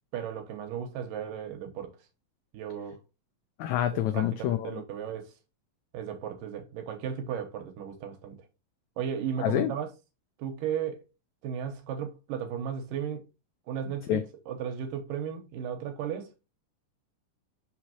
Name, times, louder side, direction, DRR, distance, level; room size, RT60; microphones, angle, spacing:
voice 1, 0.1-2.0 2.5-3.0 4.1-5.3 5.9-8.5 9.0-9.9 10.4-11.0 11.4-13.2 13.7-16.3, right 8 dB, 85° right, 2.7 m, -35 dB
voice 2, 3.6-4.8 9.4-9.7 14.1-14.2, left 12 dB, 85° left, 1.6 m, -27 dB
6.2 x 5.7 x 2.9 m
omnidirectional pair, 3.8 m